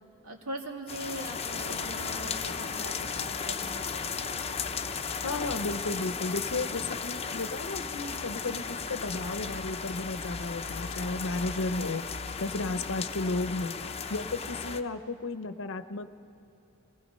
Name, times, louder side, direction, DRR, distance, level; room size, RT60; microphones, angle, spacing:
voice 1, 0.2-4.5, right 1 dB, 85° right, 1 dB, 2.4 m, -41 dB
sound 1, 0.9-14.8, left 5 dB, 30° left, 0.7 m, -35 dB
voice 2, 5.2-16.1, left 3 dB, 65° left, 11 dB, 0.8 m, -34 dB
26.5 x 19.0 x 5.5 m, 2.8 s
head